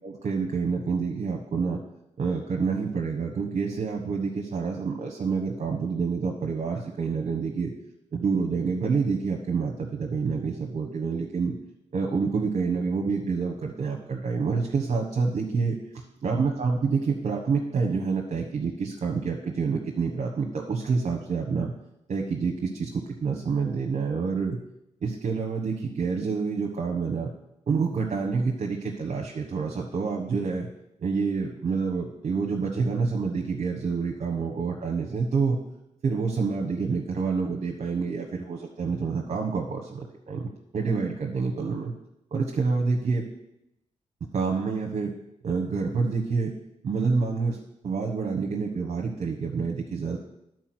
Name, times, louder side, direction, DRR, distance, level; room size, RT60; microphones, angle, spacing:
voice 1, 0.0-1.8 2.2-7.7 8.1-11.5 11.9-15.8 16.2-21.7 22.1-24.6 25.0-27.3 27.7-30.7 31.0-35.6 36.0-40.5 40.7-41.9 42.3-43.2 44.3-45.1 45.4-46.5 46.8-47.6 47.8-50.2, right 5 dB, 60° right, 0 dB, 1.2 m, -27 dB
11.0 x 4.6 x 6.2 m, 0.84 s
cardioid pair, 75°, 13 cm